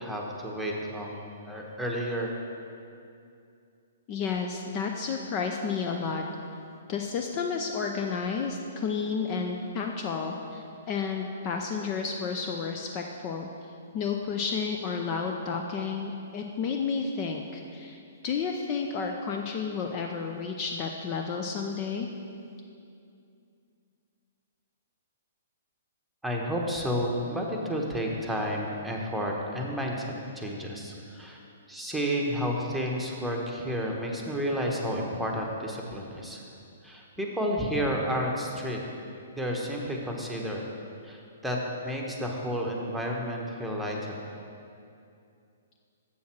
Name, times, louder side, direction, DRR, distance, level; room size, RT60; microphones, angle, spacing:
voice 1, 0.0-2.3 26.2-31.4 31.7-36.4 36.8-38.8 39.3-40.7 41.0-44.2, equal, 5° right, -1 dB, 1.1 m, -31 dB
voice 2, 4.1-6.2 6.9-13.5 13.9-18.0 18.2-22.1, left 5 dB, 35° left, 3 dB, 0.5 m, -31 dB
7.4 x 7.0 x 6.0 m, 2.5 s
figure-of-eight pair, 120°, 0 cm